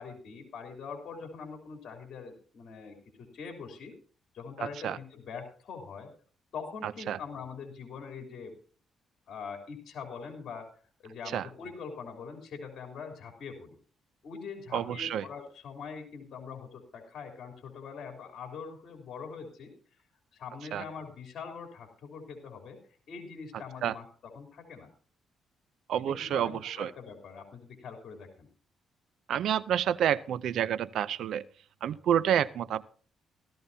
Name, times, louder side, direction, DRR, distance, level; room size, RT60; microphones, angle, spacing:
voice 1, 0.0-3.9 4.3-6.1 6.5-8.6 9.3-10.7 11.0-13.8 14.2-19.7 20.3-22.8 23.1-24.9 26.0-28.5, left 5 dB, 60° left, 3 dB, 3.3 m, -43 dB
voice 2, 14.7-15.2 20.7-20.8 23.8-23.9 25.9-26.9 29.3-31.4 31.8-32.8, right 10 dB, 75° right, 18 dB, 0.5 m, -28 dB
16.0 x 14.0 x 2.8 m, 0.41 s
cardioid pair, 90°, 0 cm